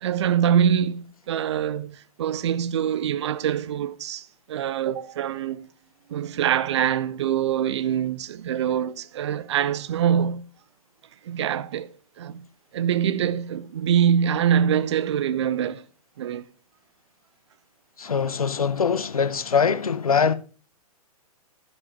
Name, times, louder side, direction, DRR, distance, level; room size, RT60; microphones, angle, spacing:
voice 1, 0.0-5.7 6.1-10.5 11.2-11.9 12.2-12.5 12.7-15.8 16.2-16.4, right 9 dB, 45° right, 0.6 m, -24 dB
voice 2, 18.0-20.3, left 6 dB, 70° left, 0.9 m, -22 dB
12.0 x 7.6 x 3.0 m
figure-of-eight pair, 115°, 19 cm